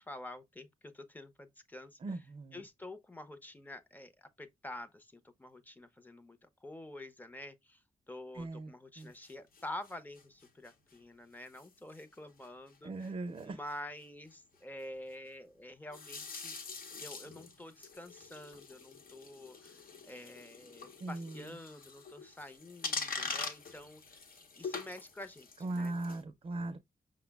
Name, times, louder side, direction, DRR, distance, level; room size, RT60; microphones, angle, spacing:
voice 1, 0.0-2.0 2.5-13.1 13.4-16.5 17.0-24.2 24.6-26.0, left 1 dB, 10° left, 0.5 m, -48 dB
voice 2, 2.0-2.6 8.3-8.7 9.0-9.1 12.8-13.6 21.0-21.4 25.6-26.8, right 2 dB, 40° right, 0.4 m, -39 dB
sound 1, 9.0-10.9 11.4-11.7 11.9-12.2 12.4-12.5 12.7-12.8 13.0-13.1 13.4-13.7 15.9-26.2, left 4 dB, 80° left, 0.9 m, -44 dB
5.6 x 2.0 x 3.3 m
wide cardioid pair, 160°, 15 cm